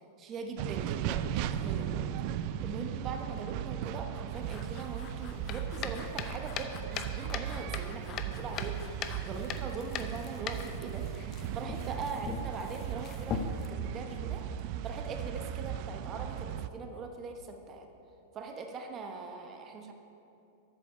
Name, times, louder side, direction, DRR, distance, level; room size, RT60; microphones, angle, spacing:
voice 1, 0.2-2.1 2.6-8.8 9.2-11.1 11.5-14.5 14.8-17.9 18.3-19.9, right 4 dB, 30° right, 4 dB, 0.9 m, -41 dB
sound 1, 0.6-16.7, right 10 dB, 50° right, 0.4 m, -37 dB
sound 2, 4.3-13.7, left 7 dB, 35° left, 0.6 m, -41 dB
8.5 x 6.5 x 6.6 m, 2.8 s
hypercardioid pair, 135°, 0 cm